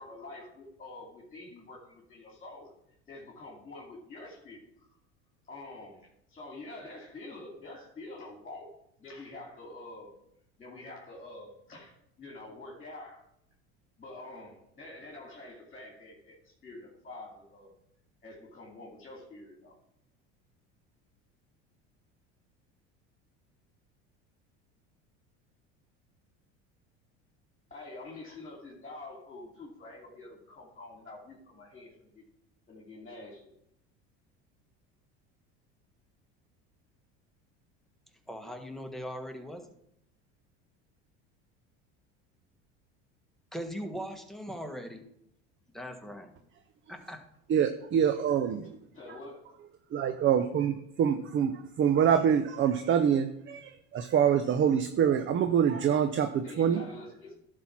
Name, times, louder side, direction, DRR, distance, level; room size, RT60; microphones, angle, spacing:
voice 1, 0.0-2.7 3.1-4.6 5.5-10.1 10.6-13.2 14.0-17.7 18.2-19.8 27.7-32.2 32.7-33.5 48.5-48.6 48.9-49.6 55.7-56.0 56.4-57.3, left 2 dB, 25° left, -1 dB, 2.5 m, -47 dB
voice 2, 38.3-39.7 43.5-45.0 45.7-46.3 46.9-47.2, equal, ahead, 3 dB, 1.4 m, -39 dB
voice 3, 47.5-48.8 49.9-56.8, right 8 dB, 40° right, 9 dB, 0.6 m, -26 dB
11.0 x 4.4 x 5.9 m, 0.76 s
supercardioid pair, 90°, 32 cm